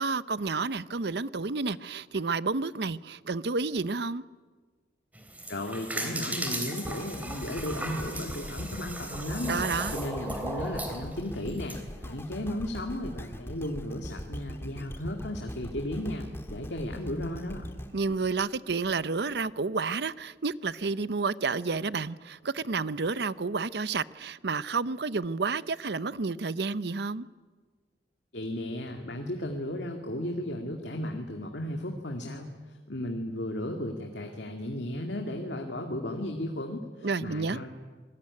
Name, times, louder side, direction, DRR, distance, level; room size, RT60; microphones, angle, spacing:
voice 1, 0.0-4.2 9.5-10.0 17.9-27.3 37.0-37.6, right 4 dB, 65° right, 0.7 m, -30 dB
sound 1, 5.1-11.8, right 1 dB, 10° right, 3.4 m, -36 dB
voice 2, 5.5-9.6 9.9-17.7 28.3-37.7, left 1 dB, 75° left, 2.3 m, -35 dB
sound 2, 6.8-19.0 19.6-19.7, equal, 15° left, 1.6 m, -41 dB
27.0 x 21.0 x 9.7 m
head